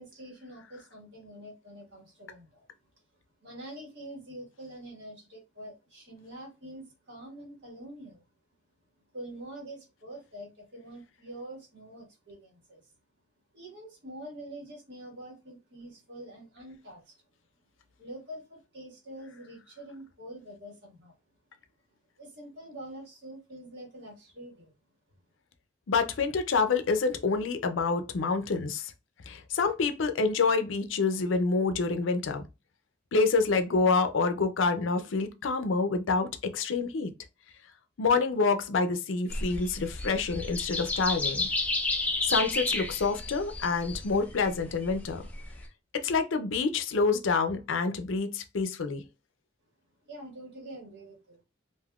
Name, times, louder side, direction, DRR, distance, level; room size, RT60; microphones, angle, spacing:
voice 1, 0.0-2.6 3.4-8.2 9.1-12.8 13.5-17.0 18.0-21.1 22.2-24.7 50.0-51.4, right 1 dB, 65° right, 1.6 m, -45 dB
voice 2, 25.9-28.9 29.3-32.4 33.1-37.1 38.0-41.5 42.2-45.2 45.9-49.0, left 4 dB, 85° left, 0.5 m, -27 dB
sound 1, 39.3-45.6, left 2 dB, 10° left, 0.5 m, -32 dB
3.4 x 2.6 x 2.3 m
head